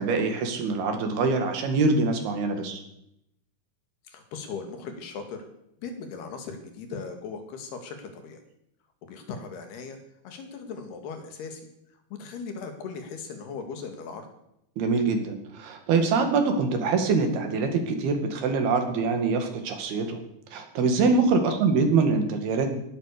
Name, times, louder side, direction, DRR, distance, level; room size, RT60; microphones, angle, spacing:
voice 1, 0.0-2.8 14.8-20.2 20.5-22.8, right 4 dB, 75° right, 5 dB, 4.1 m, -24 dB
voice 2, 4.1-5.4 5.8-8.4 9.1-10.0 10.2-11.6 12.2-14.3 21.4-21.6, left 5 dB, 90° left, 6 dB, 4.3 m, -38 dB
17.5 x 12.0 x 6.8 m, 0.78 s
omnidirectional pair, 4.5 m